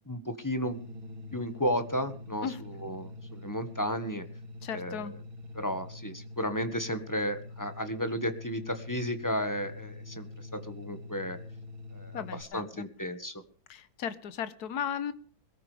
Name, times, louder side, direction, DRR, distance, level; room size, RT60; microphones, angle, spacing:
voice 1, 0.0-0.8 1.3-4.3 4.7-5.2 5.5-11.4 11.9-13.4, equal, 10° left, 9 dB, 1.4 m, -33 dB
sound 1, 0.6-12.4, left 2 dB, 80° right, 3.8 m, -45 dB
voice 2, 4.6-5.1 12.1-12.6 13.7-15.1, left 8 dB, 55° left, 13 dB, 1.6 m, -35 dB
22.0 x 14.0 x 3.5 m, 0.43 s
omnidirectional pair, 2.2 m